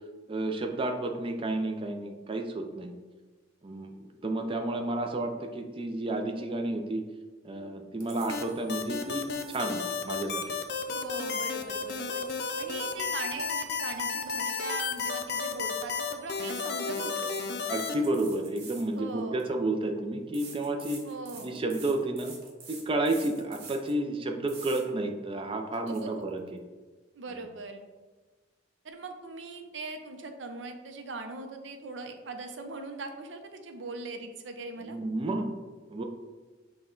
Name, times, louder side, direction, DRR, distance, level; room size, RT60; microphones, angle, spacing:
voice 1, 0.3-2.9 3.6-7.0 7.4-10.6 17.7-21.0 21.4-22.4 22.7-26.6 34.8-35.5 35.9-36.0, right 2 dB, 30° right, 4 dB, 0.4 m, -31 dB
sound 1, 8.0-8.6 9.3-9.9 10.9-11.6 11.9-13.8 14.1-14.3 14.9-15.6 16.3-19.5 20.3-24.0 24.5-24.8 25.3-25.4 25.7-26.0, right 4 dB, 55° right, 1.1 m, -48 dB
sound 2, 8.3-17.9, left 5 dB, 60° left, 0.4 m, -32 dB
voice 2, 10.9-12.2 12.6-17.3 18.9-19.5 21.1-21.6 25.9-26.3 27.2-27.8 28.8-35.0, right 3 dB, 80° right, 5 dB, 0.6 m, -40 dB
6.2 x 2.3 x 3.8 m, 1.3 s
head